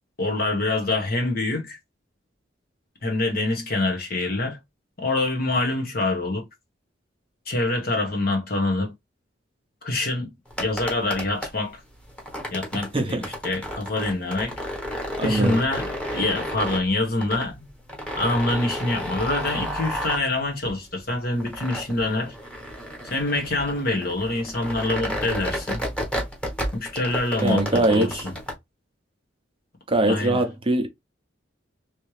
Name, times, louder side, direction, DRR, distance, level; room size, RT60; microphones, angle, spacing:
voice 1, 0.2-1.8 3.0-4.6 5.0-6.5 7.5-8.9 9.8-10.3 10.6-11.8 12.5-14.6 15.2-17.7 18.2-22.3 23.0-25.8 26.7-28.3 30.1-30.4, left 2 dB, 50° left, 1.3 m, -25 dB
sound 1, 10.5-28.5, equal, 5° left, 1.1 m, -32 dB
voice 2, 12.9-13.3 15.2-15.6 27.4-28.1 29.9-30.9, right 2 dB, 30° right, 0.6 m, -22 dB
3.2 x 3.0 x 3.2 m
head